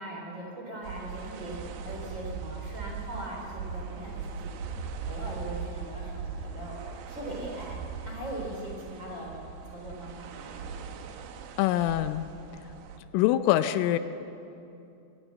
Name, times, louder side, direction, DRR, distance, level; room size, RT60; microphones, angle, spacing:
voice 1, 0.0-4.4 5.1-7.8 8.0-10.6, right 1 dB, 25° right, -2 dB, 3.5 m, -40 dB
sound 1, 0.8-13.0, right 6 dB, 75° right, 2.2 m, -39 dB
voice 2, 11.6-12.3 13.1-14.0, left 13 dB, 85° left, 11 dB, 3.1 m, -24 dB
24.5 x 18.5 x 7.4 m, 2.7 s
omnidirectional pair, 5.9 m